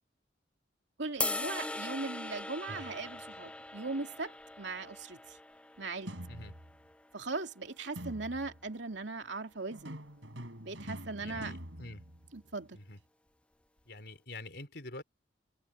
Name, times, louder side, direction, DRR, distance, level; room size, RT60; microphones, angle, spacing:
voice 1, 1.0-5.4 5.8-6.1 7.1-10.0 10.6-11.5 12.3-12.8, right 3 dB, 75° right, 2.7 m, -39 dB
sound 1, 1.2-7.4, left 2 dB, 5° left, 0.4 m, -40 dB
sound 2, 2.7-3.4 6.1-6.9 8.0-8.7 9.7-12.7, equal, 90° right, 7.7 m, -45 dB
voice 2, 11.2-12.0 12.7-13.0 13.9-15.0, left 2 dB, 60° left, 4.5 m, -46 dB
head